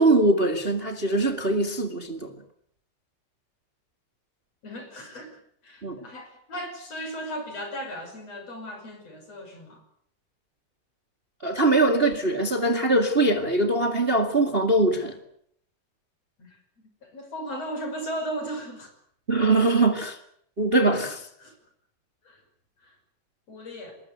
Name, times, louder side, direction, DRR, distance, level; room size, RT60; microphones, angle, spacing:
voice 1, 0.0-2.3 5.8-6.0 11.4-15.2 19.3-20.2 20.6-21.2, right 2 dB, 20° right, 1.8 m, -22 dB
voice 2, 4.6-5.4 5.6-9.8 16.4-16.6 17.0-18.9 21.4-21.5 22.2-22.4 22.8-22.9 23.5-24.0, equal, 50° left, 6.7 m, -36 dB
26.0 x 21.0 x 8.2 m
omnidirectional pair, 3.7 m